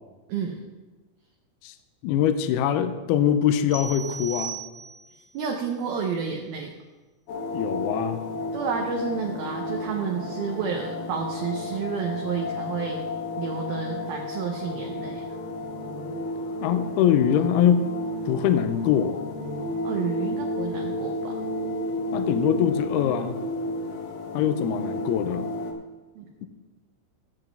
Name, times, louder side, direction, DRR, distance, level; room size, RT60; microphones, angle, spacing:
voice 1, 2.0-4.6 7.5-8.2 16.6-17.9 18.3-19.2 22.1-23.4 24.3-25.5, left 9 dB, 85° left, 10 dB, 2.2 m, -23 dB
sound 1, 3.7-5.2, right 5 dB, 25° right, 1.8 m, -36 dB
voice 2, 5.3-6.7 8.5-13.0 13.4-15.2 19.8-21.4 26.2-26.3, right 6 dB, 75° right, 1 dB, 2.3 m, -30 dB
sound 2, 7.3-25.7, left 1 dB, 70° left, 2.5 m, -32 dB
16.5 x 7.8 x 3.5 m, 1.2 s
omnidirectional pair, 5.3 m